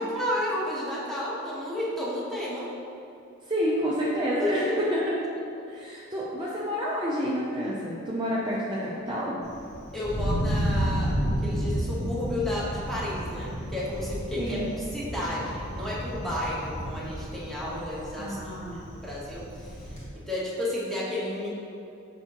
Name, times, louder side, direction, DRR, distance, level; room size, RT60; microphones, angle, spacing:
voice 1, 0.0-2.7 4.4-4.8 9.9-18.4 19.0-19.9 20.3-21.5, left 1 dB, ahead, -7 dB, 1.2 m, -32 dB
voice 2, 3.5-5.1 5.7-9.4 14.4-14.7 18.2-18.8, equal, 20° right, -6 dB, 0.5 m, -29 dB
Thunder, 9.4-20.0, equal, 30° left, 1.2 m, -32 dB
6.5 x 4.9 x 3.0 m, 2.6 s
head